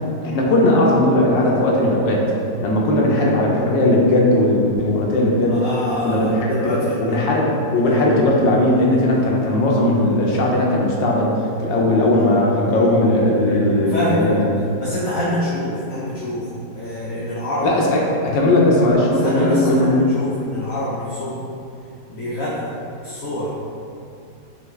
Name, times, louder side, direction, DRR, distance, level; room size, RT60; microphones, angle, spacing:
voice 1, 0.2-2.2 2.6-5.7 6.0-14.4 17.6-20.0, left 1 dB, 75° left, -2 dB, 1.3 m, -18 dB
voice 2, 5.5-7.4 7.8-8.2 12.1-12.3 13.8-14.4 14.8-16.5 16.7-17.7 19.2-21.5 22.1-23.5, left 1 dB, 60° left, -9 dB, 0.9 m, -26 dB
5.7 x 2.3 x 3.1 m, 2.5 s
omnidirectional pair, 2.0 m